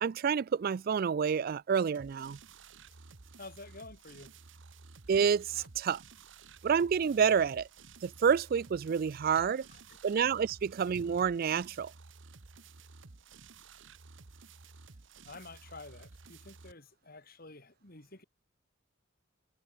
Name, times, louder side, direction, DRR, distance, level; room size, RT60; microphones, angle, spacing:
voice 1, 0.0-2.4 5.1-6.0 6.6-7.7 8.0-9.6 10.0-11.9, right 7 dB, 45° right, 0.3 m, -28 dB
sound 1, 1.9-16.7, right 4 dB, 65° right, 1.2 m, -54 dB
voice 2, 3.4-4.4 5.5-5.7 9.3-10.0 15.2-18.2, left 3 dB, 45° left, 3.8 m, -50 dB
head